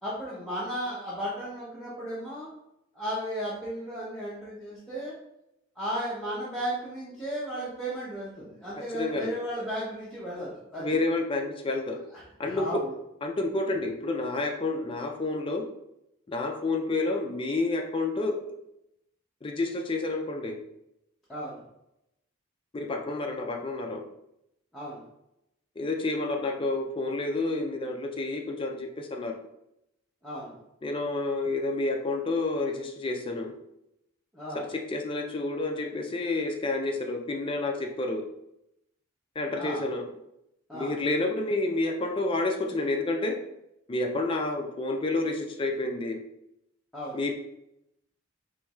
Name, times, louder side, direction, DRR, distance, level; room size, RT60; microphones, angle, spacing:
voice 1, 0.0-2.5 2.9-5.1 5.8-11.0 12.1-12.9 21.3-21.6 24.7-25.0 30.2-30.6 34.3-34.6 39.5-39.9 40.7-41.0 46.9-47.2, equal, ahead, -11 dB, 0.7 m, -35 dB
voice 2, 8.9-9.3 10.8-12.0 12.4-12.8 13.2-15.7 16.3-18.6 19.4-20.6 22.7-24.1 25.8-29.3 30.8-33.6 34.7-38.2 39.4-40.0 40.7-43.5 43.9-46.2 47.1-47.4, left 2 dB, 25° left, 2 dB, 0.4 m, -29 dB
4.4 x 3.1 x 2.3 m, 0.83 s
head